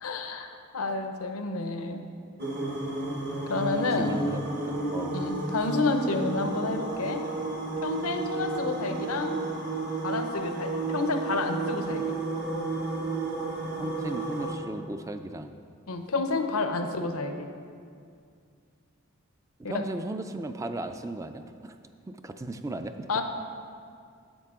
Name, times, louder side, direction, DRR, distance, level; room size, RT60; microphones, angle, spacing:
voice 1, 0.0-2.0 3.5-4.1 5.1-7.3 7.8-9.4 10.0-12.2 15.9-17.5 19.6-19.9 23.1-23.2, left 3 dB, 85° left, 6 dB, 0.7 m, -30 dB
sound 1, 2.4-14.6, right 2 dB, 50° right, 1.0 m, -32 dB
voice 2, 3.9-5.2 13.7-15.5 19.6-21.8 22.1-23.1, right 2 dB, 15° right, 8 dB, 0.3 m, -36 dB
10.0 x 8.2 x 3.7 m, 2.3 s
head